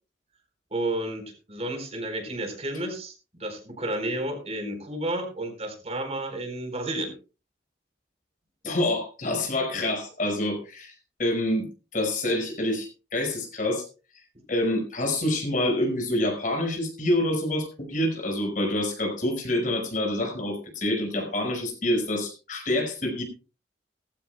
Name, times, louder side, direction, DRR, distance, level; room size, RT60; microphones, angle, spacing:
voice 1, 0.7-7.1, right 1 dB, 35° right, 4 dB, 4.3 m, -31 dB
voice 2, 8.6-10.9 11.2-11.7 11.9-13.8 14.5-23.2, left 1 dB, 50° left, 3 dB, 5.3 m, -27 dB
19.0 x 15.0 x 2.3 m, 0.33 s
head